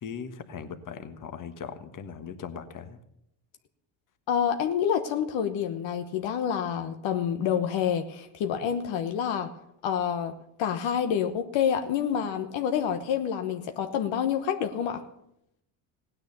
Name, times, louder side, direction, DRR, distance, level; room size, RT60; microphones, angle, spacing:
voice 1, 0.0-3.0, left 7 dB, 40° left, 10 dB, 1.4 m, -39 dB
voice 2, 4.3-9.5 9.8-15.0, left 8 dB, 65° left, 7 dB, 1.2 m, -28 dB
16.5 x 9.7 x 6.9 m, 0.80 s
supercardioid pair, 95°, 49 cm